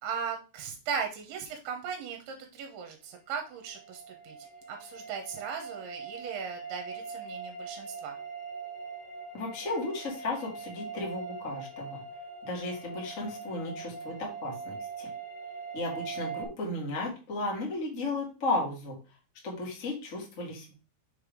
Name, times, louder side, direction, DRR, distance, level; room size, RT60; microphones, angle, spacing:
voice 1, 0.0-4.4 4.7-8.2, right 6 dB, 80° right, 4 dB, 2.8 m, -37 dB
sound 1, 3.3-16.5, right 4 dB, 85° left, 1.5 m, -42 dB
voice 2, 9.3-12.0 12.4-15.1 15.7-19.0 19.4-20.7, left 2 dB, 65° left, -2 dB, 0.7 m, -34 dB
6.3 x 3.4 x 4.9 m, 0.32 s
omnidirectional pair, 4.7 m